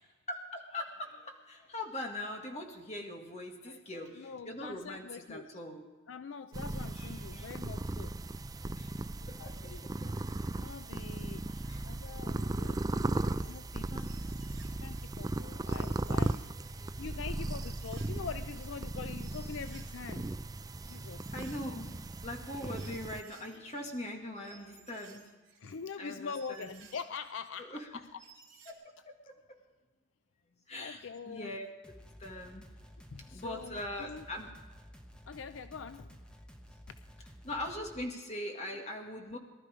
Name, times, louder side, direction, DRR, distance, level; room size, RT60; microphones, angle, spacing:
voice 1, 0.3-5.8 6.7-7.5 8.8-10.1 11.6-11.9 13.6-14.1 16.8-17.0 21.3-25.3 25.6-26.9 27.6-27.9 28.7-28.8 29.1-29.6 30.7-31.7 32.2-32.7 33.3-34.5 37.4-39.4, left 1 dB, 35° left, 2 dB, 2.0 m, -42 dB
voice 2, 3.6-5.6 6.1-8.1 9.2-10.2 10.6-13.1 13.4-13.9 14.7-16.4 17.0-20.3 20.8-21.3 25.6-28.0 30.7-31.5 33.1-34.2 35.3-36.2 37.2-37.3, left 5 dB, 70° left, 11 dB, 0.5 m, -44 dB
sound 1, 6.5-23.2, right 2 dB, 20° right, 0.4 m, -37 dB
sound 2, 13.2-13.7 13.9-15.4 15.7-17.1 17.5-18.2 18.4-28.7, right 7 dB, 65° right, 2.5 m, -59 dB
sound 3, 31.8-38.0, equal, 5° left, 1.1 m, -53 dB
19.0 x 12.5 x 4.9 m, 1.3 s
head